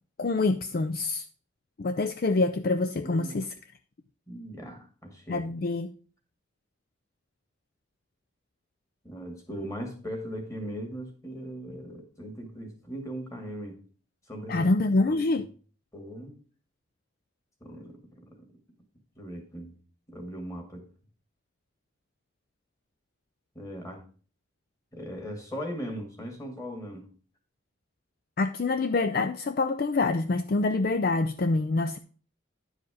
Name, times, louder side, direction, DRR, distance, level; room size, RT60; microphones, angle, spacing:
voice 1, 0.2-1.2 1.8-3.5 5.3-5.9 14.5-15.5 28.4-32.0, left 3 dB, 50° left, 0.4 m, -26 dB
voice 2, 3.0-3.5 4.3-5.5 9.0-13.8 14.3-14.7 15.0-15.2 15.9-16.4 17.6-18.5 19.2-19.7 20.1-20.9 23.5-24.0 24.9-27.1, equal, 15° left, 2.2 m, -39 dB
10.5 x 4.9 x 4.9 m
head